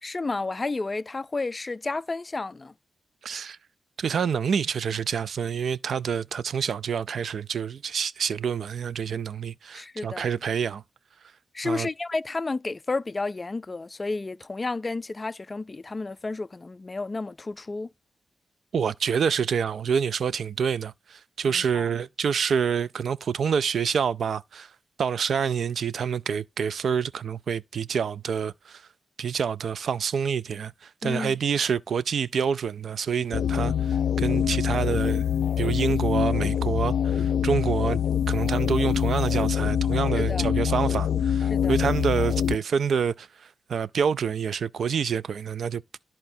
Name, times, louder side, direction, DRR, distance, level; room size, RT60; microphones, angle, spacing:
voice 1, 0.0-2.7 9.7-10.3 11.5-17.9 21.4-21.9 31.0-31.4 40.1-40.5 41.5-41.7, left 3 dB, 25° left, 0.3 m, -31 dB
voice 2, 3.2-3.6 4.0-10.8 11.6-11.9 18.7-24.7 25.0-28.8 29.2-35.2 35.6-38.0 38.3-45.8, right 7 dB, 65° right, 0.4 m, -27 dB
sound 1, 33.3-42.6, left 9 dB, 85° left, 0.5 m, -25 dB
13.0 x 4.4 x 2.6 m
wide cardioid pair, 160°, 0 cm